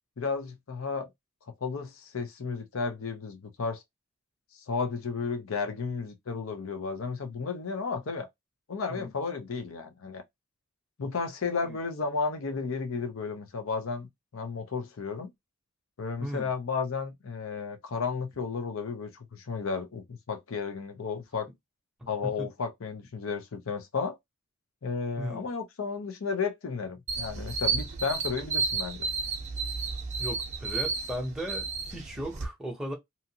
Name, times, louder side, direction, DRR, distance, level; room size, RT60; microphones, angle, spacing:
voice 1, 0.2-1.1 1.6-3.8 4.7-8.3 8.7-10.2 11.0-15.3 16.0-21.5 22.1-24.2 24.8-29.1, left 5 dB, 85° left, 0.6 m, -33 dB
sound 1, 27.1-32.4, right 4 dB, 35° right, 0.6 m, -32 dB
voice 2, 30.2-32.9, equal, 5° right, 0.7 m, -36 dB
2.7 x 2.5 x 2.7 m
head